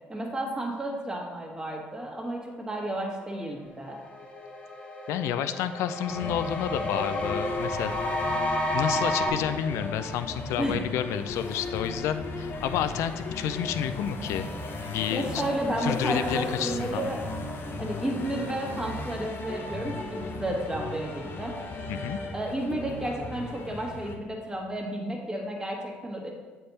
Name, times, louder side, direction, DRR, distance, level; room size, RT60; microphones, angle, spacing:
voice 1, 0.1-4.0 10.6-10.8 15.1-17.2 17.8-21.6 22.3-26.3, right 1 dB, 15° right, -1 dB, 1.5 m, -32 dB
sound 1, 3.5-3.6 3.9-9.3, left 1 dB, 25° left, 1.3 m, -31 dB
voice 2, 5.1-7.9 8.7-14.5 14.9-15.4 15.8-17.1 21.9-22.2, left 9 dB, 75° left, 11 dB, 0.4 m, -30 dB
sound 2, 6.1-24.2, left 3 dB, 50° left, 0.8 m, -36 dB
7.6 x 3.4 x 4.1 m, 1.3 s
supercardioid pair, 65°, 5 cm